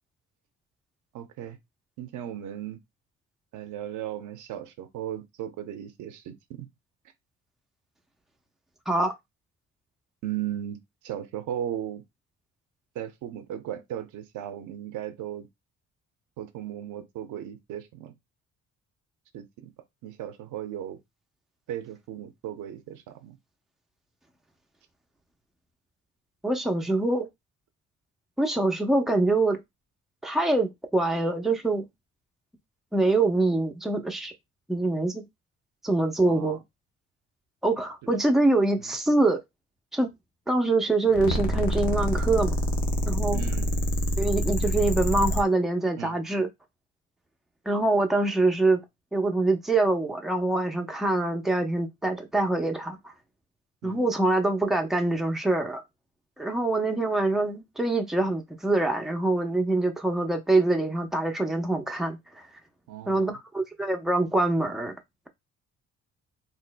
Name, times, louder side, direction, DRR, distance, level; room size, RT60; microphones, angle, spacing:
voice 1, 1.1-1.6 2.0-2.8 3.5-6.7 10.2-12.0 12.9-15.5 16.4-18.1 19.3-19.7 20.0-21.0 21.7-23.4 36.2-36.6 38.0-38.1 38.8-39.0 43.3-43.8 46.0-46.3 53.8-54.0 62.9-63.4, right 11 dB, 85° right, 0.7 m, -36 dB
voice 2, 26.4-27.3 28.4-29.6 30.2-31.9 32.9-34.3 34.7-35.2 35.8-36.6 37.6-39.4 39.9-40.1 40.5-42.5 43.1-43.4 44.2-46.5 47.7-48.8 49.1-53.0 53.8-55.8 56.4-62.2 63.1-64.9, right 2 dB, ahead, 0.7 m, -24 dB
sound 1, 41.1-45.4, equal, 90° left, 0.9 m, -26 dB
4.2 x 2.5 x 2.2 m
cardioid pair, 90°, 30 cm